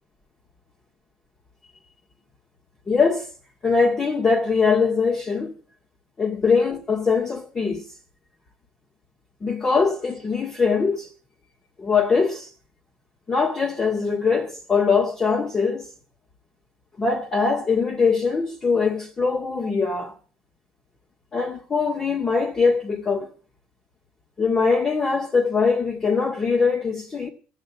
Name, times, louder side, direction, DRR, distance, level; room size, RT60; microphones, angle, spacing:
voice 1, 2.9-3.3 3.6-5.5 6.2-7.8 9.4-11.1 11.8-12.5 13.3-15.9 17.0-20.1 21.3-23.3 24.4-27.3, left 5 dB, 25° left, 2.0 m, -22 dB
15.5 x 9.1 x 7.4 m
supercardioid pair, 110°, 4 cm